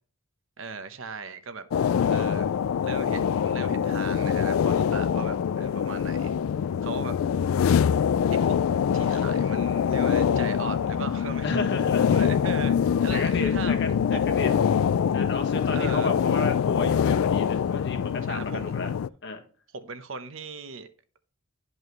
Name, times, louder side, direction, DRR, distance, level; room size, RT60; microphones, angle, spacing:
voice 1, 0.6-2.5 2.8-6.4 6.8-7.2 8.3-8.6 8.9-11.6 12.0-13.8 14.1-14.5 15.7-16.1 18.3-18.7 19.7-20.9, right 4 dB, 65° right, 0.9 m, -38 dB
sound 1, 1.7-19.1, left 7 dB, 80° left, 0.3 m, -24 dB
voice 2, 11.4-12.1 13.1-14.6 15.1-18.9 19.2-19.4, left 3 dB, 60° left, 1.5 m, -32 dB
11.0 x 5.5 x 3.0 m
head